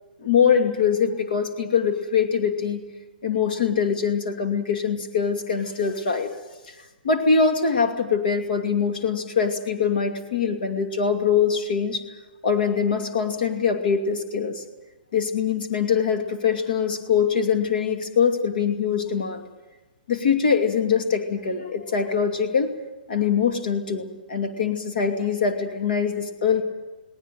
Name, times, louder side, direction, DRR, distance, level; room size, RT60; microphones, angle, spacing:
voice 1, 0.2-2.8 3.2-6.3 6.7-6.8 7.0-12.0 12.4-14.6 15.1-19.4 20.1-22.7 23.1-26.6, left 6 dB, 65° left, 4 dB, 2.5 m, -23 dB
20.0 x 19.0 x 9.3 m, 1.2 s
hypercardioid pair, 160°, 5 cm